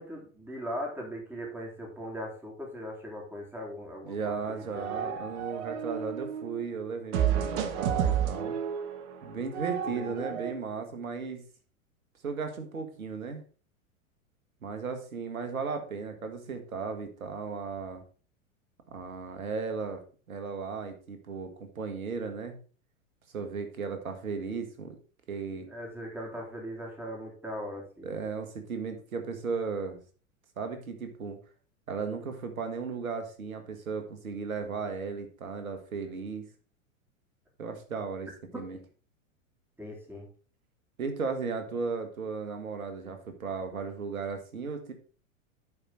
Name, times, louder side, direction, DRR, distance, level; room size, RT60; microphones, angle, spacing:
voice 1, 0.0-5.3 9.8-10.4 25.7-28.2 38.5-38.6 39.8-40.3, equal, 5° right, -2 dB, 3.3 m, -39 dB
voice 2, 4.0-8.5 9.2-11.4 12.2-13.4 14.6-18.0 18.9-20.0 20.3-22.6 23.3-25.0 25.3-25.7 28.0-30.0 30.6-31.4 31.9-36.5 37.6-38.3 38.5-38.8 41.0-44.9, right 5 dB, 80° right, 7 dB, 1.8 m, -35 dB
sound 1, 4.4-6.6 7.1-10.5, right 9 dB, 55° right, 1.3 m, -31 dB
10.5 x 5.0 x 4.1 m, 0.39 s
figure-of-eight pair, 95°, 42 cm